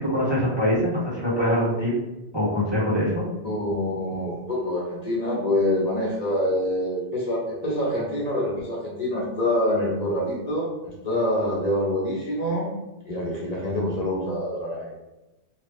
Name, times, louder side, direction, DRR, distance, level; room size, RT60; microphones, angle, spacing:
voice 1, 0.0-1.9 2.3-3.2, equal, 25° right, -8 dB, 1.0 m, -23 dB
voice 2, 3.4-12.7 13.1-14.9, left 1 dB, 40° left, -5 dB, 1.0 m, -26 dB
3.1 x 2.4 x 3.4 m, 1.0 s
omnidirectional pair, 1.1 m